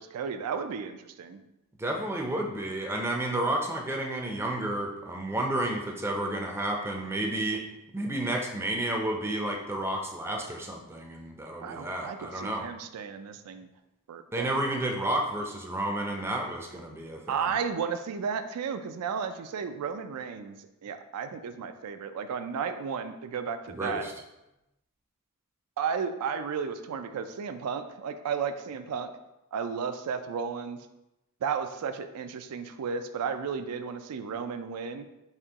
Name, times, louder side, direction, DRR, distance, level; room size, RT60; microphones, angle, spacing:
voice 1, 0.0-1.4 11.6-13.7 14.1-14.7 17.3-20.5 20.8-24.0 25.8-29.1 29.5-30.8 31.4-35.1, right 6 dB, 90° right, 9 dB, 0.4 m, -33 dB
voice 2, 1.8-7.7 7.9-12.7 14.3-17.6 23.7-24.1, right 1 dB, 10° right, 1 dB, 0.4 m, -31 dB
4.3 x 2.8 x 3.5 m, 0.93 s
head